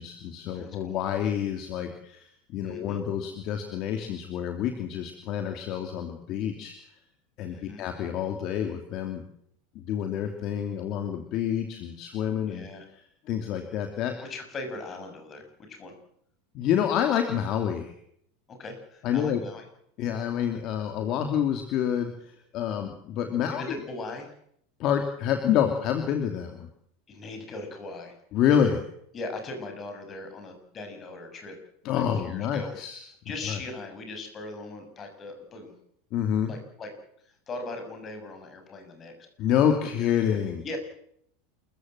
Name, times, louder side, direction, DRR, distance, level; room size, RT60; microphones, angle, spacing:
voice 1, 0.0-2.3 2.5-6.8 7.4-9.2 9.7-12.6 13.3-14.1 16.5-17.9 19.0-19.4 20.0-23.6 24.8-26.7 28.3-28.8 31.8-33.0 33.5-33.6 36.1-36.5 39.4-40.6, left 9 dB, 40° left, 5 dB, 2.9 m, -27 dB
voice 2, 0.5-0.9 2.6-3.0 7.4-7.8 12.4-12.9 14.2-15.9 18.5-19.6 23.4-24.3 27.1-28.2 29.1-31.5 31.9-32.7 33.0-35.7 36.5-36.9 37.2-39.1 40.6-40.8, left 2 dB, 25° left, 5 dB, 6.3 m, -39 dB
28.0 x 15.0 x 7.9 m, 0.71 s
supercardioid pair, 155°, 0 cm